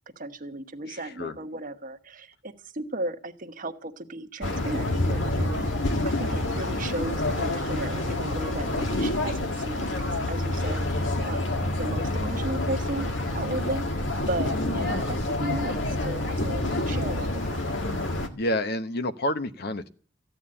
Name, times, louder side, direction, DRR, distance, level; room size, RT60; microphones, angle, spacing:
voice 1, 0.2-5.6 6.0-11.4 11.8-13.9 14.3-17.7, right 1 dB, 45° right, 7 dB, 1.2 m, -35 dB
voice 2, 0.9-1.4 14.8-15.0 18.1-19.9, left 1 dB, 60° left, 10 dB, 1.0 m, -30 dB
sound 1, 4.4-18.3, left 1 dB, 80° left, 1.8 m, -28 dB
14.0 x 9.2 x 8.8 m, 0.43 s
head